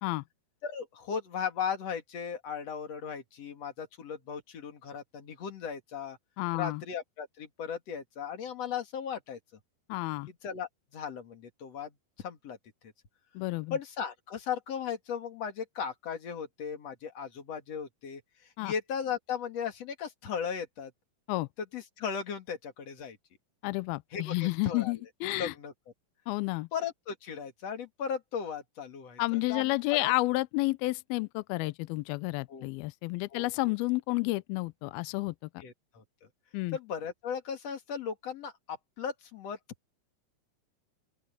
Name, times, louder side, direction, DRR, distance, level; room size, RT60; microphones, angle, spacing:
voice 1, 0.6-6.2 6.5-9.4 10.3-11.9 12.2-12.6 13.7-18.2 18.6-20.9 21.7-23.2 24.1-25.0 25.3-25.7 26.7-29.7 30.0-30.1 32.5-32.7 33.3-33.5 35.6-36.0 36.7-39.6, left 7 dB, 45° left, 2.7 m, -37 dB
voice 2, 6.4-6.8 9.9-10.3 13.4-13.8 18.6-18.7 21.3-21.5 23.6-25.5 26.3-26.7 29.2-35.3 36.5-36.8, left 22 dB, 85° left, 2.2 m, -31 dB
open air
omnidirectional pair, 5.0 m